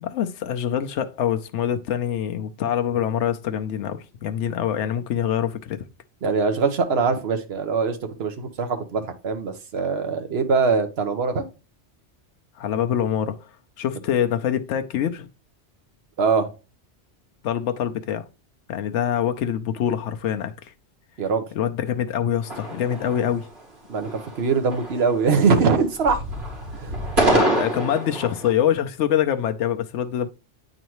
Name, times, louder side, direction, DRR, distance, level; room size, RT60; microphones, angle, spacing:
voice 1, 0.0-5.8 12.6-13.5 13.8-15.3 17.4-18.2 18.7-20.7 21.5-23.5 27.3-30.3, left 9 dB, 85° left, 0.9 m, -25 dB
voice 2, 6.2-11.4 16.2-16.5 21.2-21.4 23.9-26.2 26.7-27.0, right 5 dB, 65° right, 1.2 m, -22 dB
sound 1, 22.4-23.6 24.0-24.5 24.7-25.7 26.0-28.5, right 1 dB, 45° right, 2.5 m, -26 dB
8.9 x 3.9 x 3.0 m
omnidirectional pair, 1.2 m